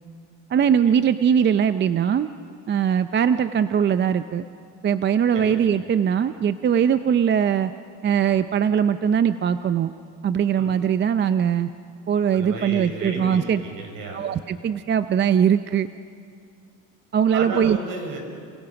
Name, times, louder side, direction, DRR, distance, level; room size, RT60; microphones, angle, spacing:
voice 1, 0.5-2.3 2.7-4.4 4.8-7.7 8.0-9.9 10.2-11.7 12.1-13.6 14.1-15.9 17.1-17.8, right 8 dB, 30° right, 11 dB, 0.6 m, -21 dB
voice 2, 12.3-14.2 17.3-18.2, right 3 dB, 65° right, 3 dB, 6.4 m, -33 dB
29.0 x 26.0 x 5.9 m, 2.4 s
cardioid pair, 110°, 36 cm